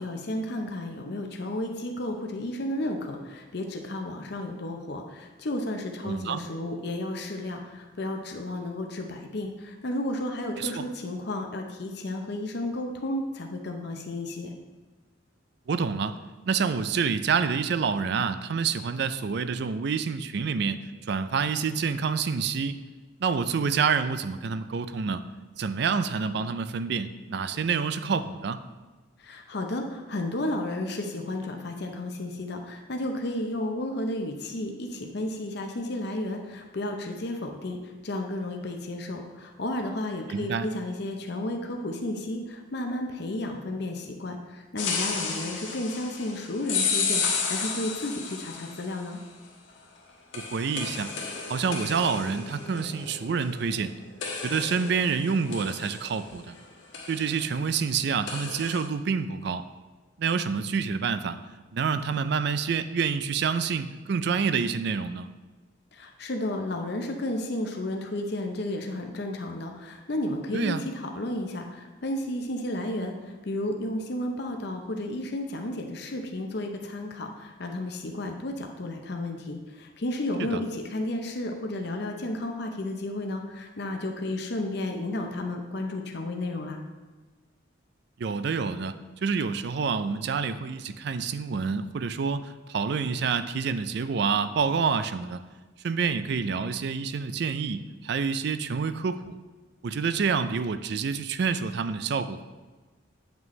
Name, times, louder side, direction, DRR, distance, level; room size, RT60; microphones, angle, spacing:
voice 1, 0.0-14.5 29.2-49.2 65.9-86.8, left 1 dB, 60° left, 3 dB, 0.7 m, -32 dB
voice 2, 6.0-6.4 10.6-10.9 15.7-16.2 16.5-20.8 21.1-22.8 23.2-25.2 25.6-28.6 40.3-40.7 50.3-51.1 51.5-53.9 54.4-56.5 57.1-59.6 60.2-61.4 61.7-65.3 70.5-70.8 80.4-80.6 88.2-95.4 95.8-99.4 99.8-102.4, right 5 dB, 60° right, 11 dB, 0.4 m, -28 dB
sound 1, 44.8-49.0 50.3-53.8 54.2-56.6 56.9-57.5 58.3-58.9, left 5 dB, 80° left, 1.3 m, -32 dB
8.9 x 6.1 x 3.2 m, 1.3 s
head